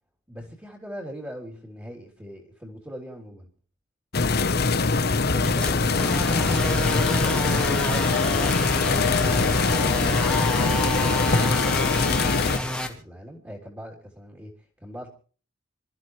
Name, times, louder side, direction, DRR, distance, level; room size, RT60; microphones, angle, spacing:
voice 1, 0.3-3.5 5.3-9.1 9.6-15.1, equal, 10° right, -3 dB, 3.1 m, -41 dB
sound 1, 4.1-12.6, left 4 dB, 50° left, 0.9 m, -22 dB
sound 2, 5.4-12.9, left 1 dB, 5° left, 2.2 m, -29 dB
27.0 x 13.5 x 3.2 m, 0.39 s
head